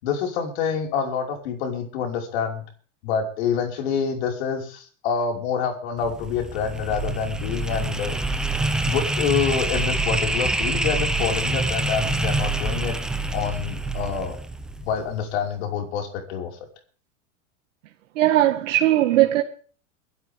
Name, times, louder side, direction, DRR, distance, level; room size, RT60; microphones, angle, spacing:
voice 1, 0.0-2.6 3.0-8.2 8.8-13.0 13.3-14.4 14.9-16.5, left 7 dB, 55° left, 5.5 m, -27 dB
sound 1, 6.0-15.1, right 2 dB, ahead, 0.7 m, -26 dB
voice 2, 18.2-19.4, right 14 dB, 75° right, 1.9 m, -18 dB
24.0 x 12.0 x 3.7 m
supercardioid pair, 175°, 38 cm